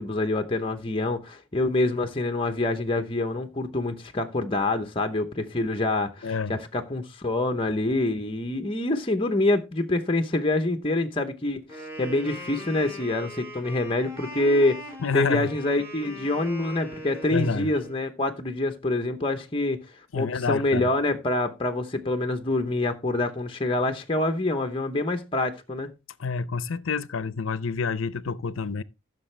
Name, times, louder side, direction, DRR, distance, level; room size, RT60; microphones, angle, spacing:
voice 1, 0.0-14.8 15.1-19.8 20.1-25.9, left 2 dB, 25° left, 0.9 m, -26 dB
voice 2, 6.2-6.5 15.0-15.5 17.3-17.7 20.1-20.9 26.2-28.8, left 5 dB, 85° left, 0.6 m, -28 dB
Wind instrument woodwind instrument, 11.7-18.0, equal, 15° right, 3.5 m, -40 dB
14.5 x 6.7 x 3.3 m
head